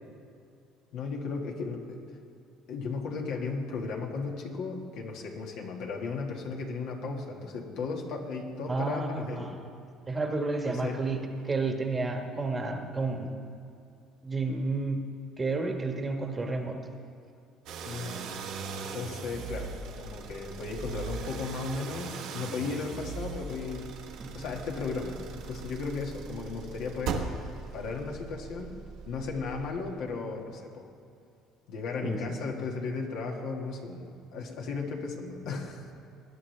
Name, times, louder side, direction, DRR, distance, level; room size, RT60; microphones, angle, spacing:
voice 1, 0.9-2.0 2.7-9.5 10.7-11.1 17.8-18.2 18.9-23.9 24.3-27.3 27.7-28.8 29.1-30.9 31.7-35.9, left 4 dB, 75° left, 1 dB, 1.7 m, -35 dB
voice 2, 8.7-9.5 10.1-11.2 11.4-13.3 14.2-15.0 15.4-16.8 24.2-24.3 32.0-32.4, right 3 dB, 25° right, 4 dB, 1.2 m, -31 dB
sound 1, 17.7-30.0, right 5 dB, 70° right, 1.2 m, -39 dB
19.5 x 10.5 x 3.3 m, 2.5 s
supercardioid pair, 95°, 0 cm